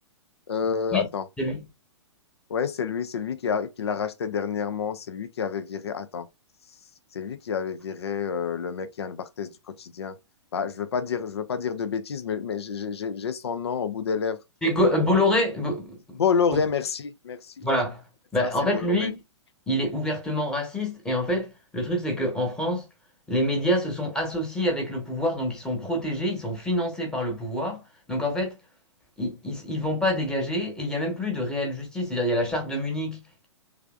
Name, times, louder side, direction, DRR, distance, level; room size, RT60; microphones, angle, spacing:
voice 1, 0.5-1.2 2.5-6.3 7.1-10.2 10.5-14.4 16.2-17.6 18.4-19.1, left 6 dB, 60° left, 0.6 m, -29 dB
voice 2, 14.6-16.2 17.6-18.0 18.3-19.2 19.7-22.9 23.3-27.8 28.1-28.6 29.2-33.5, left 1 dB, 5° left, 1.2 m, -26 dB
3.4 x 3.4 x 2.4 m
figure-of-eight pair, 115°, 16 cm